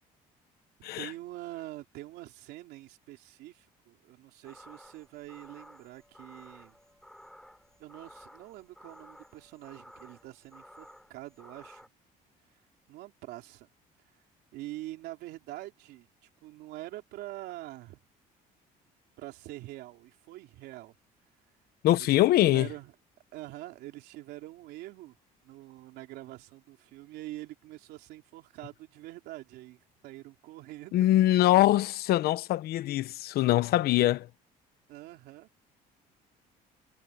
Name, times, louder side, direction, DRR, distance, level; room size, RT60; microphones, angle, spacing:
voice 1, 1.0-6.8 7.8-11.8 12.9-13.7 14.5-16.1 16.4-18.0 19.2-20.9 22.0-22.2 22.5-22.9 23.3-25.1 25.4-31.1 34.9-35.5, right 17 dB, 80° right, 3.4 m, -45 dB
sound 1, 4.4-11.9, equal, 5° left, 5.2 m, -54 dB
voice 2, 21.8-22.7 30.9-34.3, left 15 dB, 70° left, 1.1 m, -23 dB
cardioid pair, 105°, 17 cm